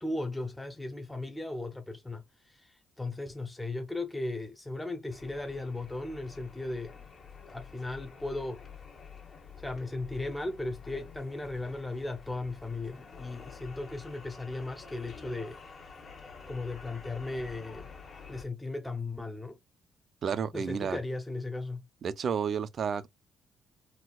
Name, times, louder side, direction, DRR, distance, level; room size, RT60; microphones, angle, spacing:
voice 1, 0.0-7.0 7.5-8.6 9.6-15.6 15.8-15.9 16.5-17.9 18.3-19.6 20.5-21.9, left 2 dB, 10° left, 0.6 m, -37 dB
sound 1, 5.1-18.4, left 6 dB, 45° left, 0.9 m, -49 dB
voice 2, 20.2-21.0 22.0-23.1, right 7 dB, 55° right, 0.4 m, -31 dB
4.1 x 2.3 x 2.2 m
cardioid pair, 90°, 0 cm